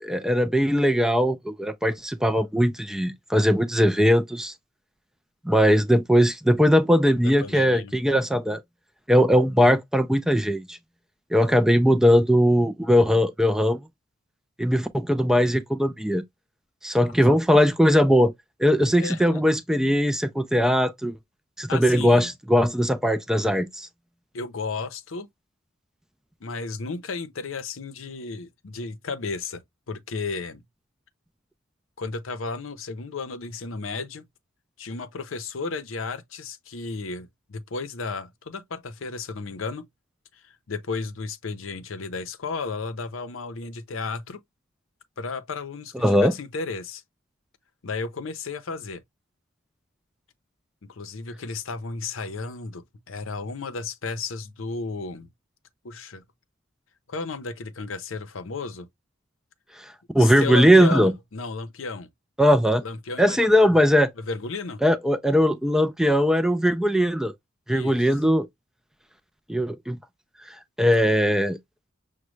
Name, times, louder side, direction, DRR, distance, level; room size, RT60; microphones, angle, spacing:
voice 1, 0.0-4.5 5.4-8.6 9.1-10.8 11.3-13.8 14.6-16.2 16.8-18.3 18.6-21.2 21.6-23.9 46.0-46.3 59.8-61.1 62.4-62.8 63.2-64.1 64.8-67.3 67.7-68.5 69.5-70.0 70.5-71.6, equal, 5° right, 0.3 m, -20 dB
voice 2, 7.2-7.9 17.0-17.1 18.9-19.4 21.7-22.3 24.3-25.3 26.4-29.6 29.9-30.6 32.0-34.2 34.8-39.8 40.3-44.4 45.2-47.0 47.8-49.0 50.8-55.3 55.8-56.2 57.1-58.9 60.2-62.1 62.8-63.8 64.2-64.8 67.7-68.0, left 4 dB, 70° left, 0.6 m, -33 dB
6.2 x 2.2 x 3.1 m
head